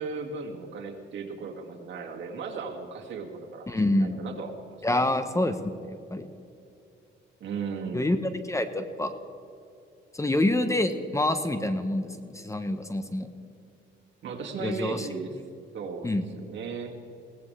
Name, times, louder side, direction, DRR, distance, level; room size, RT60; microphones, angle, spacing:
voice 1, 0.0-5.0 7.4-8.1 14.2-15.4 15.7-17.0, right 4 dB, 65° right, 1 dB, 2.3 m, -36 dB
voice 2, 3.7-4.2 4.8-5.6 6.1-6.3 7.9-8.2 8.4-9.1 10.1-13.3 14.6-15.1 15.3-15.4 16.0-16.3, left 1 dB, 15° left, 9 dB, 1.0 m, -26 dB
21.0 x 17.5 x 3.4 m, 2.7 s
cardioid pair, 90°, 20 cm